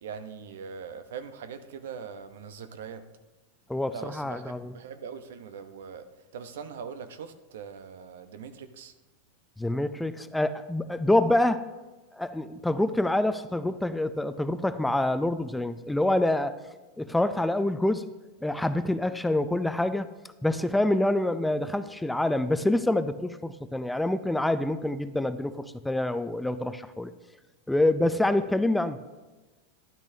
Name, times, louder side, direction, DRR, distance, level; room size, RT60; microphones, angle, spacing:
voice 1, 0.0-3.1 3.9-8.9, right 6 dB, 80° right, 10 dB, 0.8 m, -41 dB
voice 2, 3.7-4.7 9.6-11.7 12.1-16.6 17.0-18.0 18.4-20.1 20.4-27.1 27.7-29.0, left 1 dB, 5° left, 12 dB, 0.4 m, -26 dB
12.0 x 10.0 x 2.7 m, 1.2 s
hypercardioid pair, 120°, 0 cm